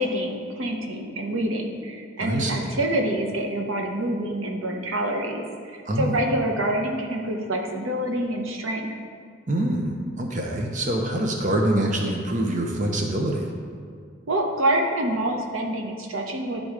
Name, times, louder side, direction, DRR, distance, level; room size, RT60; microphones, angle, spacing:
voice 1, 0.0-8.9 14.3-16.6, right 1 dB, 85° right, 2 dB, 0.9 m, -26 dB
voice 2, 2.2-2.7 5.9-6.2 9.5-13.5, right 1 dB, 40° right, 1 dB, 0.8 m, -25 dB
11.5 x 3.8 x 4.8 m, 2.1 s
head